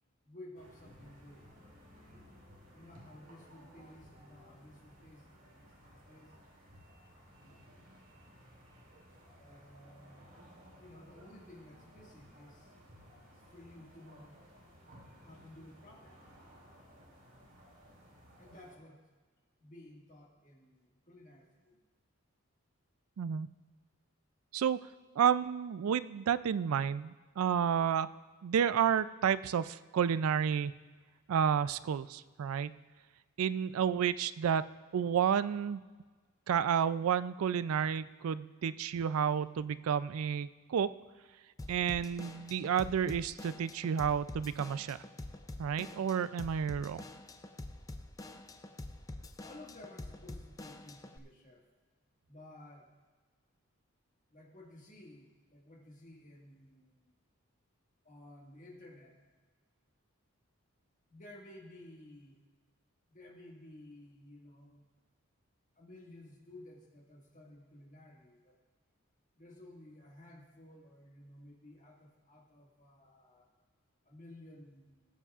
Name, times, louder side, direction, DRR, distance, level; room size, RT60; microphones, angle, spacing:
voice 1, 0.2-1.5 2.7-5.7 6.1-6.4 7.4-7.7 9.4-10.3 10.7-12.7 13.3-14.4 15.2-16.3 18.4-19.0 19.6-21.8 49.4-51.7 52.3-52.9 54.3-57.1 58.0-59.2 61.1-62.4 63.1-64.8 65.8-68.6 69.4-73.5 74.0-75.1, left 1 dB, 35° left, -1 dB, 1.8 m, -55 dB
sound 1, 0.5-18.8, equal, 65° right, 2.7 m, -58 dB
voice 2, 23.2-23.5 24.5-24.8 25.2-28.1 28.4-30.7 31.3-32.7 33.4-34.6 34.9-35.8 36.5-40.9 41.7-45.0 45.6-47.0, right 8 dB, 90° right, 15 dB, 0.4 m, -31 dB
Drum kit / Drum, 41.6-51.2, left 2 dB, 15° left, 0.4 m, -47 dB
19.0 x 8.3 x 2.4 m, 1.4 s
head